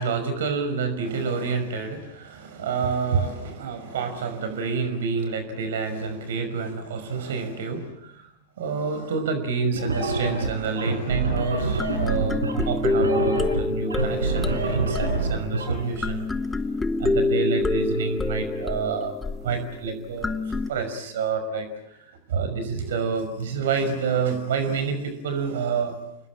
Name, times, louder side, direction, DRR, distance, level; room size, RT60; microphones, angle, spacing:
voice 1, 0.0-8.2 8.6-16.3 17.0-19.2 19.4-25.9, right 5 dB, 60° right, 9 dB, 5.6 m, -28 dB
sound 1, 9.7-15.8, right 3 dB, 75° right, 5.2 m, -26 dB
sound 2, 11.4-11.5 11.8-20.7, left 3 dB, 10° left, 1.1 m, -27 dB
30.0 x 21.0 x 8.9 m, 0.84 s
figure-of-eight pair, 90°, 0 cm